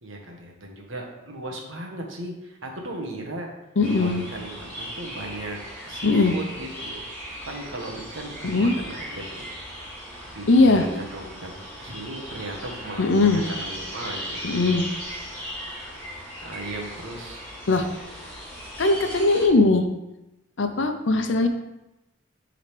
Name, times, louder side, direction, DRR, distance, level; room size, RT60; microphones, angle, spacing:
voice 1, 0.0-3.5 4.0-5.6 5.8-7.0 7.4-9.4 10.3-14.4 16.4-17.4, right 1 dB, 80° right, 0 dB, 1.4 m, -36 dB
voice 2, 3.8-4.2 6.0-6.4 8.4-8.7 10.5-10.9 13.0-13.4 14.4-14.9 17.7-17.9 18.8-19.9 20.6-21.5, left 3 dB, 70° left, 7 dB, 0.7 m, -19 dB
sound 1, 3.8-19.5, equal, 10° left, 2.2 m, -37 dB
10.0 x 3.9 x 3.4 m, 0.94 s
head